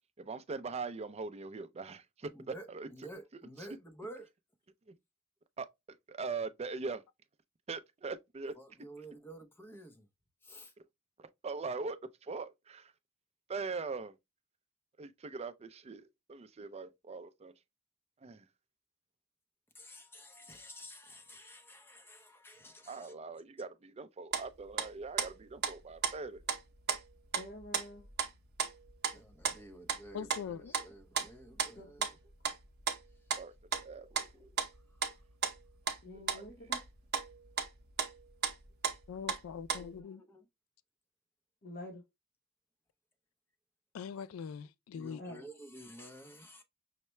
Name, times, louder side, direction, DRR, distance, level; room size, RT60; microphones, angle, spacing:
voice 1, 0.2-2.9 3.6-3.7 4.9-5.0 5.6-7.0 7.7-8.5 11.2-12.9 13.5-14.2 15.0-17.5 18.2-18.5 22.9-26.4 33.3-34.3 36.3-36.4, right 4 dB, 30° right, 0.4 m, -41 dB
voice 2, 2.3-4.3 8.6-10.1 10.4-10.7 19.7-23.1 26.0-26.1 29.1-32.1 34.3-34.5 34.9-35.1 36.4-36.5 39.7-40.5 45.0-46.6, right 1 dB, 10° left, 0.7 m, -51 dB
sound 1, 24.3-24.5 24.8-24.9 25.2-25.7 26.0-26.6 26.9-28.3 28.6-30.9 31.1-31.7 32.0-32.1 32.4-32.6 32.9-33.4 33.7-34.3 34.6-35.1 35.4-35.6 35.9-36.0 36.3-36.9 37.1-39.4 39.6-40.0, right 6 dB, 50° right, 0.8 m, -34 dB
voice 3, 27.3-28.1 31.7-32.1 36.0-36.8 41.6-42.0 45.2-45.4, left 1 dB, 45° left, 1.0 m, -47 dB
voice 4, 30.1-30.7 39.1-40.2 43.9-45.2, left 7 dB, 75° left, 0.3 m, -42 dB
5.6 x 2.1 x 3.1 m
head